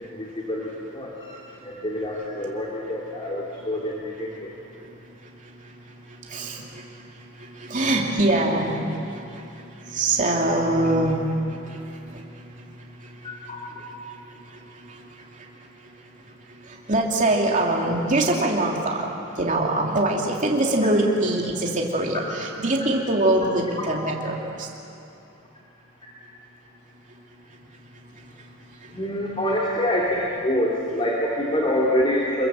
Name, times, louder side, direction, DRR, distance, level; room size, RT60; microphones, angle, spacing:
voice 1, 0.0-4.5 10.5-10.6 13.5-13.9 28.9-32.5, left 1 dB, 25° left, -4 dB, 2.7 m, -26 dB
voice 2, 6.1-6.8 7.4-9.5 9.8-12.2 14.8-15.0 16.6-19.1 19.3-24.7, right 1 dB, 35° right, -1 dB, 2.9 m, -24 dB
27.5 x 22.0 x 7.7 m, 2.7 s
head